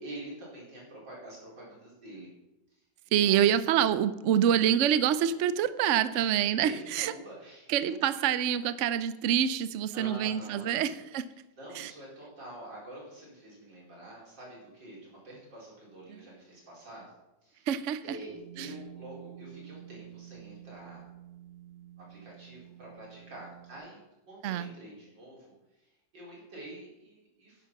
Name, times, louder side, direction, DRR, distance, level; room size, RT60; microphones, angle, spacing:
voice 1, 0.0-2.3 2.7-2.8 3.2-3.9 6.1-8.0 9.9-11.0 11.6-17.1 17.4-17.6 18.0-21.0 22.1-27.7, right 1 dB, 90° right, -4 dB, 5.2 m, -47 dB
voice 2, 3.1-7.1 7.7-11.3 11.8-11.9 17.7-18.2 18.6-18.7 24.4-24.7, right 9 dB, 65° right, 14 dB, 0.7 m, -26 dB
sound 1, 18.3-23.8, right 12 dB, 35° right, 4.2 m, -50 dB
10.5 x 10.0 x 5.9 m, 0.96 s
omnidirectional pair, 1.9 m